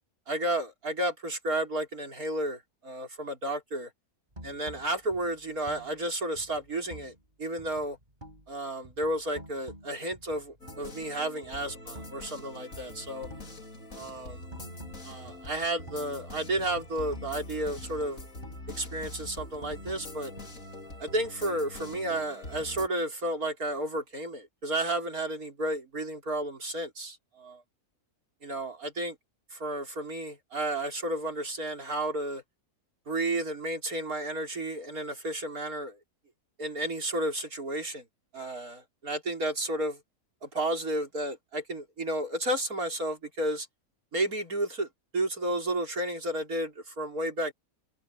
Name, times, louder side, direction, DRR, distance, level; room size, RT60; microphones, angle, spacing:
voice 1, 0.3-3.9 4.4-8.0 8.5-13.3 13.9-14.4 15.0-18.3 18.8-20.3 21.0-27.6 28.4-29.2 29.5-32.4 33.1-36.0 36.6-38.1 38.3-40.0 40.4-43.7 44.1-44.9 45.1-47.5, right 1 dB, 75° right, 5.3 m, -32 dB
sound 1, 4.3-7.3 7.6-8.6 8.8-11.1 11.4-12.4 12.7-16.3 16.6-18.7 19.0-20.9, equal, 30° right, 7.9 m, -50 dB
sound 2, 10.6-22.9, left 2 dB, 65° left, 3.3 m, -44 dB
omnidirectional pair, 1.5 m